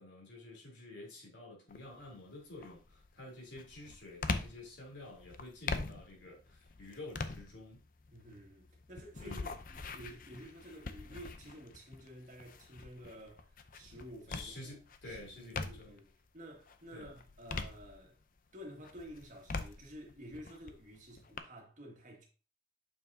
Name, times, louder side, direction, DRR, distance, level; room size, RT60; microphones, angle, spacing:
voice 1, 0.0-7.8 9.2-9.5 14.3-16.0 16.9-17.1, left 2 dB, 85° left, 3.3 m, -50 dB
sound 1, 1.7-2.1 2.6-16.1 16.5-18.4 18.8-21.4, left 3 dB, 50° left, 0.6 m, -43 dB
voice 2, 8.1-14.8 15.0-18.2 18.5-22.3, equal, 45° right, 1.9 m, -51 dB
6.9 x 5.7 x 2.7 m
head